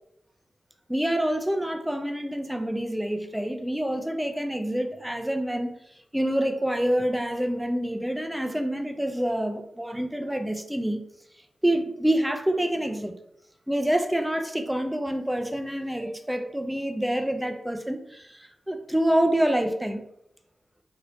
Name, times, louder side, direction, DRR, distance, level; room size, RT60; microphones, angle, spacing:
voice 1, 0.9-5.8 6.1-11.1 11.6-13.1 13.7-20.0, right 1 dB, 10° right, 0.5 m, -27 dB
3.1 x 2.7 x 2.6 m
supercardioid pair, 40°, 0 cm